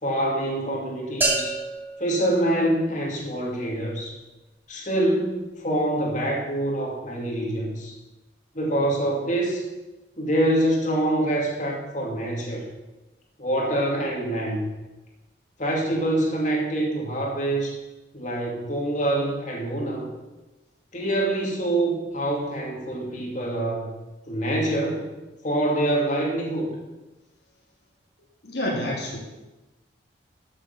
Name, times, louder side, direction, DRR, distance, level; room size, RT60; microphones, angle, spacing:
voice 1, 0.0-1.6 2.0-4.1 4.7-7.9 8.5-9.6 10.2-12.6 13.4-14.7 15.6-17.8 18.1-20.1 20.9-23.9 24.3-25.1 25.4-26.7, right 1 dB, 40° left, -1 dB, 2.6 m, -25 dB
sound 1, 1.2-3.2, right 2 dB, 10° right, 2.8 m, -29 dB
voice 2, 28.4-29.2, left 1 dB, 60° left, -2 dB, 2.4 m, -28 dB
13.0 x 7.2 x 6.8 m, 1.1 s
head